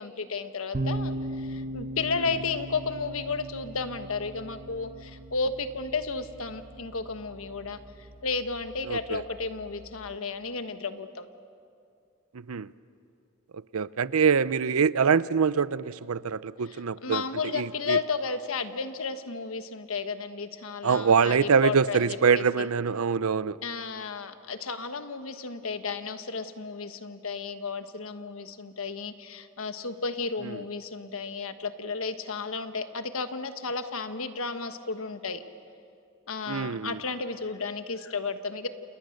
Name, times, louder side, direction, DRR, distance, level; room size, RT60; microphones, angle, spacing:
voice 1, 0.0-7.8 8.2-11.3 16.6-22.7 23.6-35.4 36.3-38.7, left 4 dB, 75° left, 9 dB, 1.3 m, -33 dB
sound 1, 0.7-10.2, right 1 dB, 35° right, 0.9 m, -39 dB
voice 2, 8.9-9.2 12.5-12.7 13.7-17.2 17.5-18.0 20.8-23.6 36.5-37.0, right 6 dB, 90° right, 17 dB, 0.6 m, -24 dB
29.0 x 28.5 x 6.6 m, 2.5 s
head